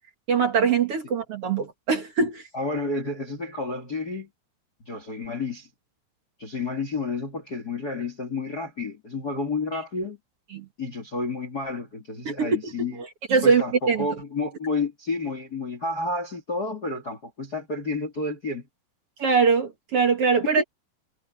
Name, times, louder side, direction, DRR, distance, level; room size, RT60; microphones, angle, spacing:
voice 1, 0.3-2.4 10.5-10.7 12.3-12.7 13.3-14.1 19.2-20.6, right 5 dB, 50° right, 1.8 m, -22 dB
voice 2, 2.5-4.3 4.8-5.7 6.4-10.2 10.8-13.0 13.4-18.7 20.6-20.7, left 3 dB, 30° left, 2.2 m, -30 dB
omnidirectional pair, 4.9 m